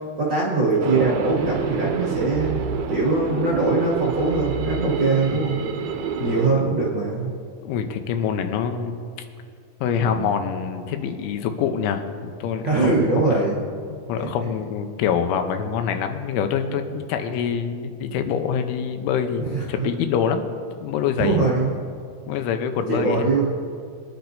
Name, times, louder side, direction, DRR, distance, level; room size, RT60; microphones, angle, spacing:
voice 1, 0.2-5.6 6.2-7.3 10.0-10.3 12.6-13.6 18.9-19.0 19.3-19.9 21.2-21.7 22.9-23.5, right 3 dB, 55° right, -6 dB, 1.2 m, -22 dB
sound 1, 0.8-6.5, right 6 dB, 85° right, 2.3 m, -27 dB
voice 2, 6.2-6.7 7.6-9.0 9.8-13.0 14.1-20.5 20.8-21.5 22.3-23.2, left 7 dB, 85° left, 6 dB, 3.2 m, -25 dB
23.5 x 10.5 x 2.7 m, 2.2 s
omnidirectional pair, 5.4 m